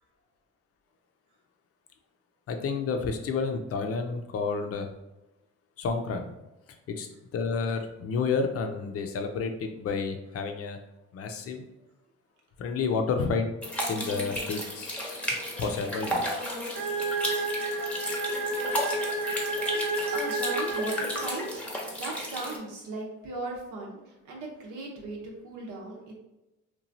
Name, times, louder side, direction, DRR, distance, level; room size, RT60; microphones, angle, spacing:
voice 1, 2.5-4.9 5.8-6.3 6.9-7.1 7.3-10.8 11.1-11.6 12.6-13.5 13.9-15.2 15.6-16.4, left 4 dB, 50° left, 5 dB, 0.5 m, -30 dB
sound 1, 13.6-22.6, equal, 5° left, 0.7 m, -34 dB
sound 2, 16.7-21.6, right 2 dB, 40° right, 0.7 m, -31 dB
voice 2, 18.9-21.7 22.0-26.1, right 2 dB, 90° right, -1 dB, 0.8 m, -38 dB
3.0 x 2.3 x 2.6 m, 0.98 s
cardioid pair, 90°, 30 cm